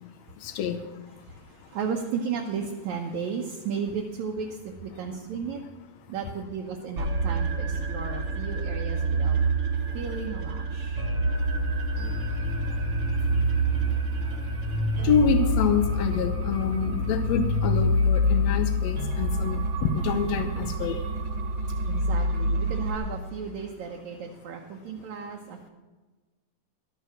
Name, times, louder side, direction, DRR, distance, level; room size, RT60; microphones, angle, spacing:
voice 1, 0.4-1.1 1.6-1.7 7.8-7.9 9.3-10.0 11.1-11.5 11.8-21.1 21.5-21.6 21.9-22.0, left 6 dB, 85° left, 8 dB, 1.5 m, -29 dB
voice 2, 1.7-5.6 6.1-9.4 9.9-11.0 21.9-25.7, right 6 dB, 70° right, 0 dB, 2.1 m, -34 dB
sound 1, 7.0-23.0, equal, 45° right, 1.7 m, -27 dB
13.0 x 9.4 x 6.3 m, 1.2 s
omnidirectional pair, 4.1 m